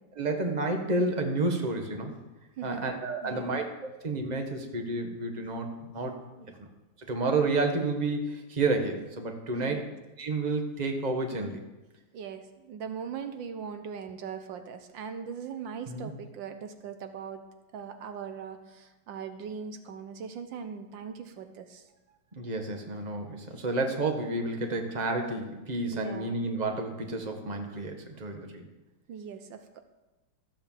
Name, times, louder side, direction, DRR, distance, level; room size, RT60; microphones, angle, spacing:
voice 1, 0.1-2.1 2.6-6.7 7.0-9.9 10.2-11.6 15.9-16.1 22.3-28.6, right 2 dB, 25° right, 4 dB, 1.5 m, -30 dB
voice 2, 3.2-3.6 9.5-9.9 12.1-17.4 17.7-21.8 25.9-26.3 29.1-29.8, right 6 dB, 75° right, 8 dB, 1.6 m, -40 dB
13.5 x 7.9 x 7.4 m, 1.1 s
omnidirectional pair, 2.1 m